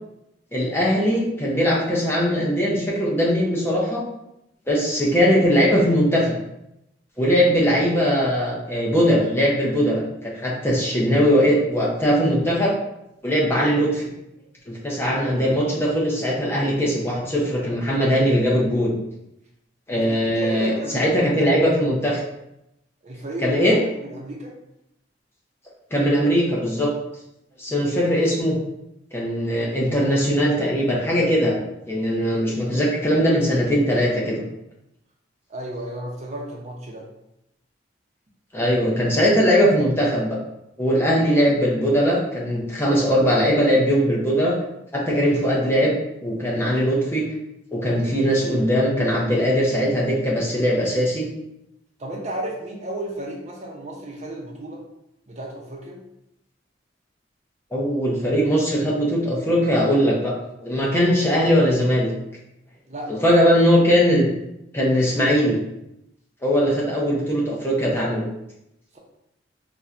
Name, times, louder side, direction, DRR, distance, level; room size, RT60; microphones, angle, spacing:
voice 1, 0.5-4.0 4.7-6.4 7.2-12.8 13.2-14.1 14.7-18.9 19.9-22.2 23.4-23.8 25.9-26.9 27.6-28.6 29.1-31.6 31.9-34.4 38.5-40.4 40.8-44.6 44.9-46.0 46.2-47.3 47.7-51.3 57.7-60.3 60.6-62.1 63.1-64.3 64.7-65.6 66.4-68.2, equal, 15° left, -4 dB, 0.6 m, -20 dB
voice 2, 19.9-21.1 21.4-21.5 23.0-24.5 35.5-37.1 52.0-54.8 55.3-56.0 62.9-63.3 68.9-69.0, right 1 dB, 35° right, -1 dB, 0.6 m, -33 dB
4.2 x 2.2 x 2.4 m, 0.84 s
head